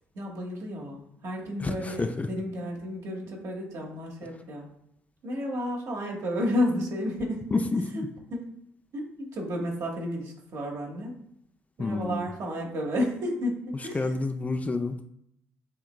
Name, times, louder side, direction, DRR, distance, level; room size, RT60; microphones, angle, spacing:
voice 1, 0.1-4.7 5.2-7.6 7.9-8.0 8.3-8.5 8.9-11.1 11.8-14.1, left 1 dB, 55° right, 0 dB, 1.4 m, -32 dB
voice 2, 1.6-2.3 7.5-8.1 11.8-12.3 13.9-15.0, left 3 dB, 20° left, 6 dB, 0.5 m, -29 dB
7.3 x 2.9 x 2.2 m, 0.74 s
hypercardioid pair, 45°, 7 cm